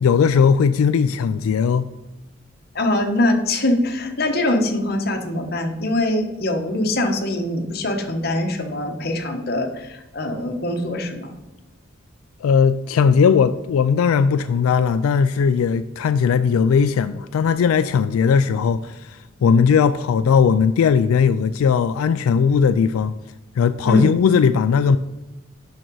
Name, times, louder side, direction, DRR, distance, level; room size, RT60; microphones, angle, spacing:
voice 1, 0.0-1.9 12.4-23.1 23.6-25.0, left 6 dB, 90° left, 0.3 m, -18 dB
voice 2, 2.7-11.3 23.8-24.2, left 1 dB, 50° left, 1.1 m, -23 dB
6.4 x 5.9 x 4.6 m
head